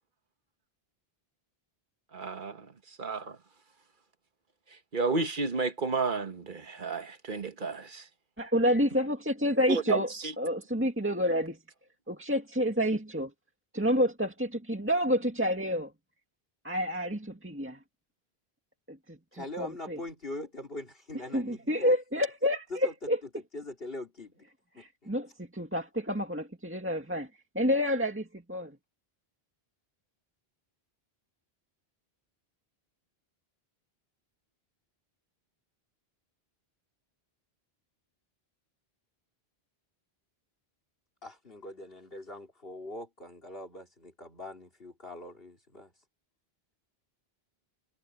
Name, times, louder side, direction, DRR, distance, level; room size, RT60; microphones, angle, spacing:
voice 1, 2.1-2.7 3.0-3.4 4.9-8.0 9.7-10.3, right 4 dB, 50° right, 1.6 m, -31 dB
voice 2, 8.4-10.1 10.4-11.6 12.1-13.3 13.7-15.9 16.6-17.8 18.9-20.0 21.3-23.2 24.8-27.3 27.6-28.7, equal, 10° right, 2.0 m, -29 dB
voice 3, 19.3-21.9 22.8-22.9 23.5-24.4 24.8-25.1 41.2-45.9, left 1 dB, 65° left, 3.9 m, -42 dB
omnidirectional pair, 1.0 m